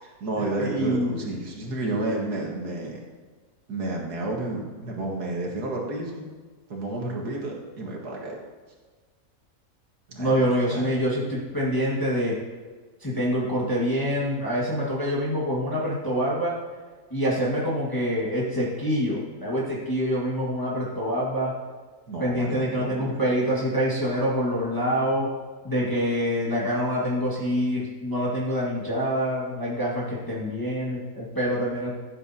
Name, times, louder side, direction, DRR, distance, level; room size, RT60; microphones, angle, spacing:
voice 1, 0.0-3.0 3.7-6.3 6.7-8.4 10.1-10.9 22.1-23.2, right 2 dB, 90° right, -1 dB, 2.3 m, -31 dB
voice 2, 0.6-1.3 10.2-12.4 13.0-16.5 17.1-21.5 22.2-25.3 25.6-31.9, equal, 15° left, -6 dB, 1.8 m, -26 dB
15.5 x 8.2 x 2.8 m, 1.4 s
omnidirectional pair, 1.6 m